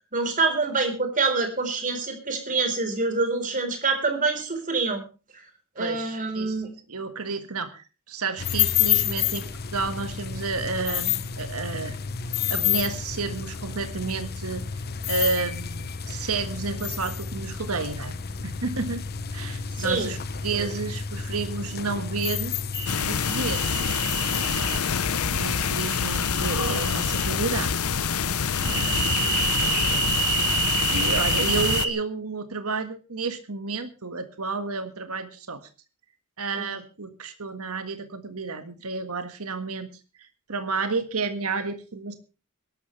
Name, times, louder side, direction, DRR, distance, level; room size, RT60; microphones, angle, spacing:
voice 1, 0.1-5.0 5.8-6.7 19.8-20.1 20.5-20.7 36.5-36.7, right 3 dB, 35° right, 6 dB, 4.2 m, -26 dB
voice 2, 5.8-6.6 6.9-12.0 12.5-14.6 15.1-18.1 18.4-19.0 19.3-20.2 20.4-22.5 23.0-23.7 24.2-24.9 25.2-27.7 28.0-28.1 28.6-29.1 29.5-30.3 30.9-35.7 36.4-39.9 40.5-42.1, right 4 dB, 75° right, 8 dB, 1.7 m, -31 dB
sound 1, 8.4-25.8, left 8 dB, 45° left, 0.9 m, -30 dB
sound 2, 22.7-24.8 25.7-27.3 28.5-31.9, right 5 dB, 55° right, 4.9 m, -28 dB
sound 3, 22.9-31.9, left 6 dB, 70° left, 0.9 m, -26 dB
22.5 x 12.5 x 3.3 m, 0.32 s
head